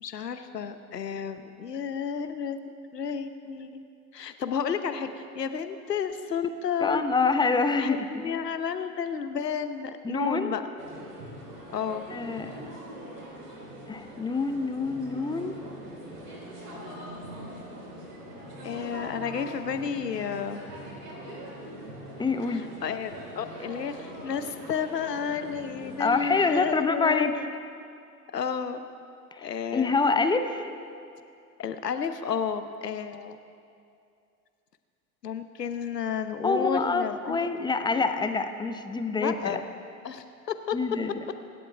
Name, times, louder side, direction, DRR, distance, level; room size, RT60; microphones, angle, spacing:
voice 1, 0.0-2.6 2.9-3.8 4.1-5.1 5.3-7.0 7.8-10.6 11.7-12.0 18.6-20.7 22.8-27.4 28.3-28.9 29.4-30.0 31.6-33.4 35.2-37.5 39.2-39.6 40.0-40.8, left 7 dB, 80° left, 10 dB, 1.0 m, -31 dB
voice 2, 6.8-8.4 10.0-10.6 12.1-12.6 13.9-15.6 22.2-22.7 26.0-27.3 29.3-30.7 36.4-39.6 40.7-41.2, left 4 dB, 10° left, 8 dB, 0.8 m, -26 dB
sound 1, 10.8-26.6, right 1 dB, 75° right, 3.5 m, -42 dB
25.5 x 11.5 x 3.4 m, 2.5 s
figure-of-eight pair, 85°, 48 cm